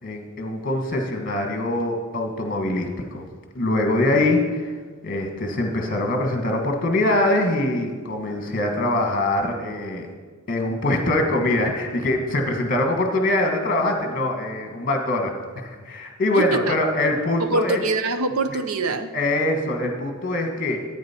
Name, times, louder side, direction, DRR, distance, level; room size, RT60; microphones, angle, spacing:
voice 1, 0.0-3.2 3.5-4.7 5.0-10.1 10.5-17.8 18.5-18.6 19.1-20.9, left 1 dB, 40° left, 3 dB, 1.4 m, -23 dB
voice 2, 16.3-16.8 17.4-19.1, right 3 dB, 80° right, 9 dB, 0.7 m, -24 dB
10.5 x 8.9 x 4.3 m, 1.5 s
head